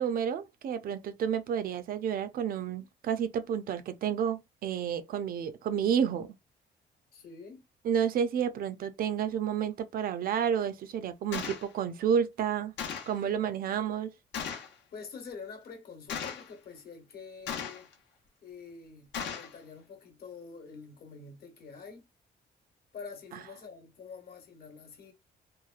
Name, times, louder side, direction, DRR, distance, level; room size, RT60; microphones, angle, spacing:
voice 1, 0.0-6.4 7.9-12.7 13.1-14.1, right 8 dB, 55° right, 0.4 m, -30 dB
voice 2, 7.1-7.6 14.9-17.9 18.4-22.1 22.9-25.1, left 5 dB, 60° left, 1.0 m, -46 dB
Gunshot gunfire, 11.3-11.7 12.8-13.2 14.3-14.7 16.1-16.5 17.5-17.9 19.1-19.5, left 7 dB, 90° left, 0.7 m, -36 dB
3.0 x 2.2 x 2.4 m
cardioid pair, 125°, 18 cm